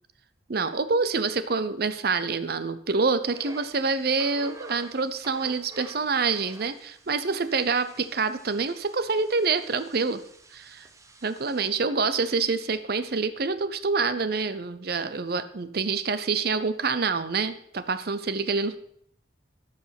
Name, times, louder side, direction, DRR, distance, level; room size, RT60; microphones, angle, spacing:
voice 1, 0.5-10.2 10.5-10.9 11.2-18.8, right 4 dB, 55° right, 13 dB, 0.7 m, -26 dB
sound 1, 3.3-11.7, right 2 dB, 15° right, 0.7 m, -50 dB
13.5 x 5.2 x 5.9 m, 0.67 s
head